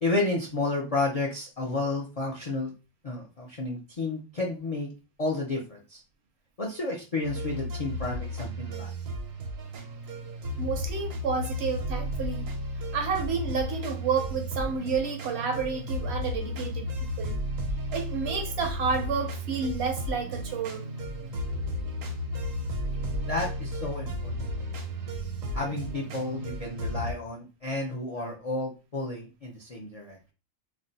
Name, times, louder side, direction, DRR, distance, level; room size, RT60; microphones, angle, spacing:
voice 1, 0.0-2.7 3.0-4.9 5.2-6.0 6.6-8.9 23.3-24.3 25.5-30.2, left 2 dB, 55° left, 0.4 m, -31 dB
sound 1, 7.2-27.1, equal, 80° right, 1.1 m, -33 dB
voice 2, 10.6-12.5 12.9-16.9 17.2-17.4 17.9-20.8, right 5 dB, 65° right, 0.7 m, -30 dB
2.6 x 2.1 x 3.9 m
omnidirectional pair, 1.3 m